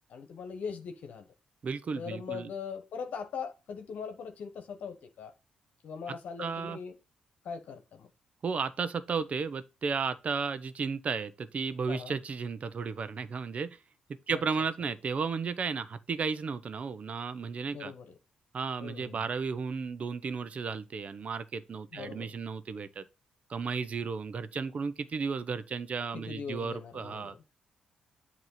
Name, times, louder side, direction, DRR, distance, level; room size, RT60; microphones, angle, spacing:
voice 1, 0.1-1.3 1.9-5.3 5.8-7.0 7.4-8.1 11.9-12.1 14.3-14.4 17.7-18.1 18.8-19.3 21.9-22.4 26.1-27.4, left 6 dB, 70° left, 1.2 m, -41 dB
voice 2, 1.6-2.5 6.1-6.8 8.4-13.8 14.3-17.9 18.5-23.1 23.5-27.3, right 5 dB, 50° right, 0.8 m, -34 dB
8.0 x 3.0 x 5.7 m
supercardioid pair, 55°, 3 cm